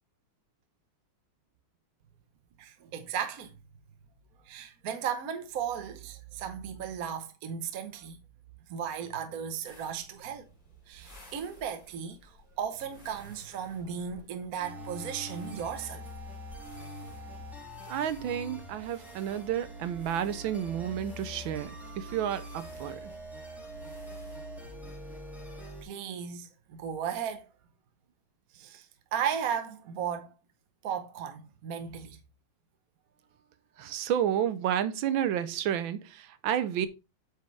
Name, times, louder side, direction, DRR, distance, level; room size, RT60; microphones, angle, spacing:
voice 1, 2.6-3.5 4.4-8.2 8.7-10.5 10.9-16.1 25.8-27.5 28.5-30.3 30.8-32.2 36.8-36.9, right 8 dB, 55° right, 1.1 m, -35 dB
sound 1, 9.6-24.4, left 2 dB, 45° left, 3.6 m, -56 dB
sound 2, 14.6-25.8, equal, ahead, 1.8 m, -44 dB
voice 2, 17.9-23.1 33.8-36.9, right 10 dB, 75° right, 1.4 m, -31 dB
8.2 x 4.8 x 3.1 m
omnidirectional pair, 2.2 m